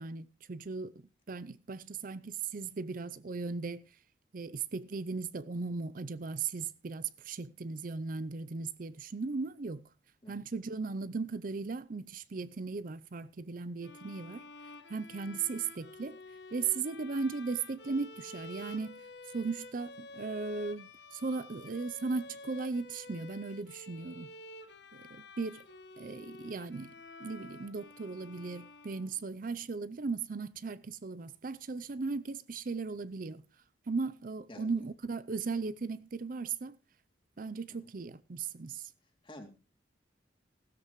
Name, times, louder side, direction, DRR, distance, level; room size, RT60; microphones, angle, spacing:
voice 1, 0.0-3.8 4.3-9.8 10.3-14.4 14.9-16.2 16.5-19.1 19.3-24.3 24.9-25.7 26.0-26.9 27.2-33.4 33.9-36.8 37.4-38.9, right 4 dB, 50° right, 0.5 m, -37 dB
sound 1, 13.8-29.5, left 2 dB, 65° left, 1.3 m, -50 dB
voice 2, 34.5-34.8 39.2-39.5, left 1 dB, 30° left, 2.7 m, -49 dB
16.0 x 13.0 x 3.1 m
head